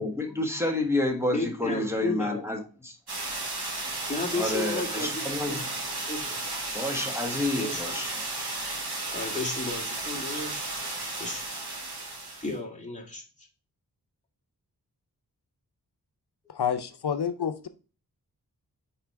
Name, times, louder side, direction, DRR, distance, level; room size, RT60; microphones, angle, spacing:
voice 1, 0.0-3.0 4.3-5.6 6.7-8.3, left 1 dB, 5° right, 1.5 m, -29 dB
voice 2, 1.3-2.4 4.1-5.2 5.5-5.7 6.1-6.4 7.6-7.8 9.1-10.7 11.2-11.4 12.4-13.2, left 2 dB, 20° left, 2.2 m, -33 dB
sound 1, 3.1-12.5, right 2 dB, 80° right, 2.1 m, -34 dB
voice 3, 16.5-17.7, left 8 dB, 80° left, 0.6 m, -29 dB
5.8 x 4.3 x 4.6 m
wide cardioid pair, 80°, 39 cm